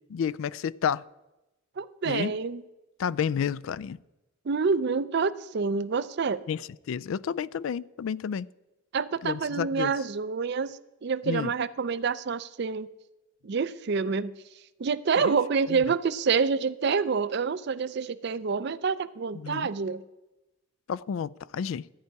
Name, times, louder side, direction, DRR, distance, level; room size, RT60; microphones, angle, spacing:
voice 1, 0.1-1.0 2.0-2.4 3.0-4.0 6.5-6.6 6.9-8.5 9.2-9.9 11.3-11.5 15.2-15.3 15.7-15.8 19.3-19.7 20.9-21.9, left 7 dB, 70° left, 0.3 m, -30 dB
voice 2, 1.8-2.6 4.5-6.4 8.9-12.9 13.4-14.3 14.8-20.0, right 5 dB, 55° right, 0.4 m, -27 dB
13.5 x 9.6 x 4.6 m
head